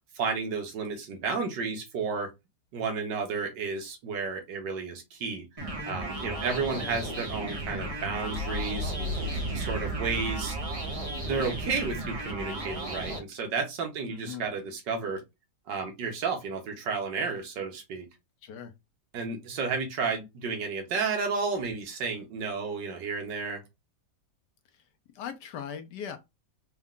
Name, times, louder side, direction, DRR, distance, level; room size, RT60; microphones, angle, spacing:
voice 1, 0.1-2.3 2.7-5.4 5.9-9.2 9.5-10.6 11.3-15.2 15.7-18.0 19.1-23.6, right 5 dB, 75° right, 1.7 m, -32 dB
sound 1, 5.6-13.2, right 1 dB, 25° right, 0.8 m, -35 dB
voice 2, 6.6-6.9 14.1-14.4 18.4-18.7 24.7-24.8 25.1-26.2, left 7 dB, 70° left, 1.2 m, -39 dB
sound 2, 7.5-12.6, right 1 dB, 50° right, 2.3 m, -36 dB
4.4 x 2.4 x 3.6 m
omnidirectional pair, 2.0 m